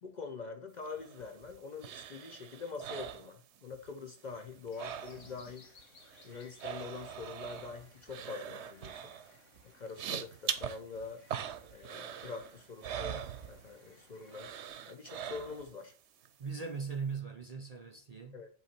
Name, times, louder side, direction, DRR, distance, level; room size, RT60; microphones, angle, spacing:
voice 1, 0.0-5.7 6.2-9.1 9.7-11.2 11.7-14.5 14.9-15.9 18.3-18.5, left 4 dB, 45° left, 0.6 m, -44 dB
sound 1, 0.9-3.9 4.2-5.5 5.8-13.9 14.3-15.8 16.2-16.3, right 9 dB, 70° right, 0.9 m, -42 dB
sound 2, 4.7-14.7, left 4 dB, 80° left, 1.5 m, -62 dB
voice 2, 16.4-18.4, right 5 dB, 45° right, 0.5 m, -39 dB
8.0 x 3.1 x 4.3 m
omnidirectional pair, 1.3 m